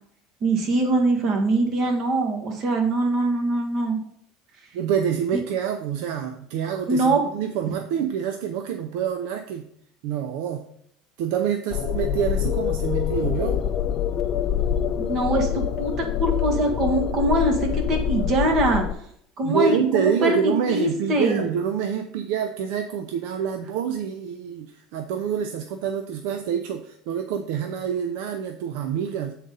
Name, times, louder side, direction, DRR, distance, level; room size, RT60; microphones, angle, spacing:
voice 1, 0.4-4.0 5.3-5.4 6.9-7.2 15.0-18.8 19.4-21.4, right 2 dB, 45° right, 3 dB, 1.8 m, -23 dB
voice 2, 4.7-9.7 10.0-10.7 11.2-13.6 19.4-29.3, right 8 dB, 75° right, 7 dB, 0.6 m, -26 dB
sound 1, 11.7-18.9, left 9 dB, 45° left, 0.6 m, -25 dB
7.5 x 4.1 x 5.4 m, 0.68 s
supercardioid pair, 130°, 0 cm